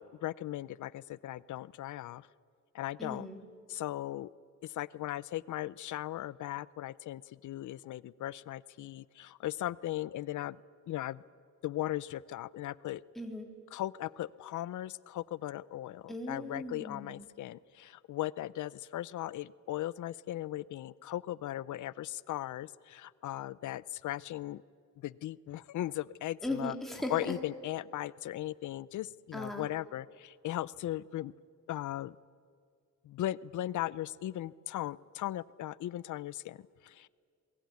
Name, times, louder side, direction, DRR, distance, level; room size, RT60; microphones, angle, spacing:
voice 1, 0.0-2.3 2.7-3.3 3.7-4.3 4.7-10.6 10.9-11.2 11.6-13.0 13.7-24.6 25.0-26.7 27.1-31.3 31.7-32.1 33.1-36.6 36.8-37.1, left 14 dB, 85° left, 20 dB, 0.6 m, -38 dB
voice 2, 3.0-3.4 13.2-13.5 16.1-17.3 26.4-27.4 29.3-29.7, left 1 dB, ahead, 1 dB, 3.7 m, -38 dB
27.5 x 21.0 x 9.5 m, 2.2 s
cardioid pair, 130°, 29 cm